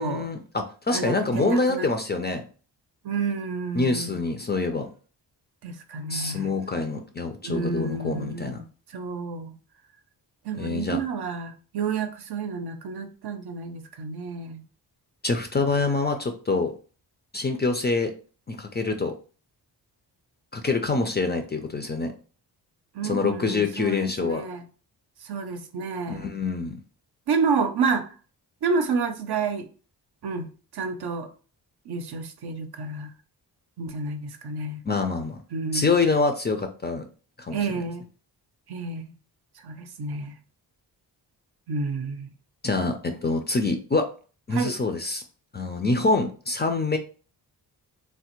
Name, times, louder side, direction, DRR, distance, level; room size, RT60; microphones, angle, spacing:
voice 1, 0.0-2.4 3.7-4.9 6.1-8.6 10.6-11.0 15.2-16.7 17.3-18.1 18.5-19.1 20.5-22.1 23.0-24.4 26.1-26.8 34.9-35.4 35.7-37.0 37.4-37.6 42.6-44.1 44.5-45.2 45.5-47.0, left 3 dB, 25° left, 0.4 m, -25 dB
voice 2, 0.9-1.9 3.0-4.2 5.6-6.5 7.4-8.6 8.9-9.5 10.4-14.6 22.9-24.6 25.2-26.3 27.3-28.1 28.6-29.7 30.2-31.3 31.9-33.1 33.8-34.8 35.5-35.9 37.5-38.1 38.7-39.1 39.6-40.3 41.7-42.3 44.5-44.8, right 4 dB, 60° right, 0.6 m, -30 dB
3.3 x 2.1 x 2.9 m
cardioid pair, 80°, 43 cm